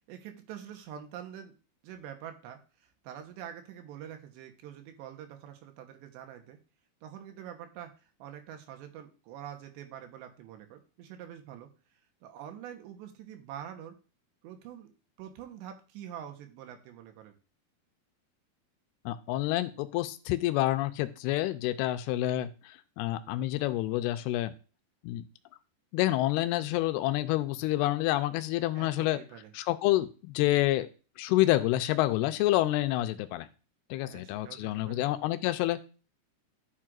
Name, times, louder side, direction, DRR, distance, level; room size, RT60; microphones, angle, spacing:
voice 1, 0.1-1.6 1.8-6.6 7.0-11.7 12.2-14.0 14.4-14.9 15.2-17.4 28.7-29.5 34.0-35.1, right 10 dB, 80° right, 6 dB, 3.2 m, -45 dB
voice 2, 19.1-24.5 25.0-25.2 25.9-29.2 29.5-30.9 31.2-33.5 33.9-35.8, left 16 dB, 85° left, 10 dB, 2.3 m, -28 dB
11.0 x 7.5 x 2.5 m, 0.34 s
omnidirectional pair, 5.1 m